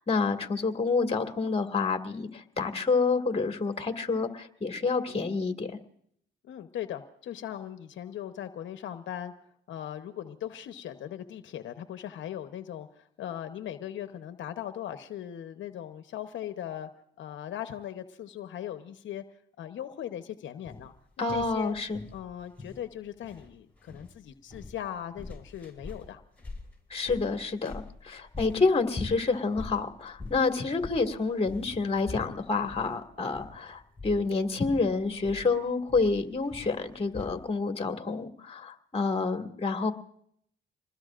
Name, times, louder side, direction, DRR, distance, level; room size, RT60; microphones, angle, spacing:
voice 1, 0.0-5.8 21.2-22.0 26.9-39.9, left 4 dB, 30° left, 5 dB, 2.0 m, -28 dB
voice 2, 6.4-9.3 9.7-16.9 17.2-19.2 19.6-21.7 22.1-26.2 28.5-28.7, left 10 dB, 70° left, 8 dB, 1.0 m, -39 dB
sound 1, 20.6-37.5, left 3 dB, 5° left, 6.2 m, -44 dB
27.0 x 20.5 x 2.5 m, 0.68 s
cardioid pair, 90°, 20 cm